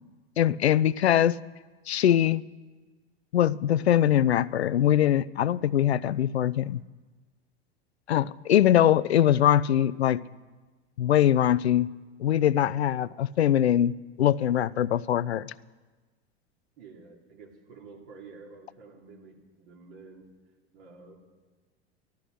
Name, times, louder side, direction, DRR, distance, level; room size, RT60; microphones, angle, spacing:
voice 1, 0.4-1.4 1.9-2.4 3.3-6.8 8.1-10.2 11.0-11.9 12.2-15.5, left 11 dB, 85° left, 0.5 m, -22 dB
voice 2, 16.8-20.3 20.7-21.2, right 4 dB, 60° right, 3.4 m, -49 dB
13.5 x 13.0 x 6.7 m
hypercardioid pair, 85°, 31 cm